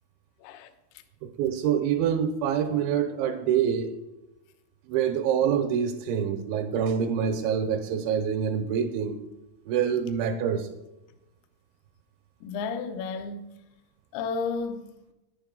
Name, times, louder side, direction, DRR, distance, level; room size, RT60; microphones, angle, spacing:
voice 1, 1.4-3.9 4.9-9.2 9.7-10.7, right 8 dB, 80° right, 2.9 m, -26 dB
voice 2, 12.4-13.5 14.1-14.8, left 4 dB, 80° left, 2.3 m, -32 dB
10.0 x 10.0 x 5.3 m
omnidirectional pair, 5.8 m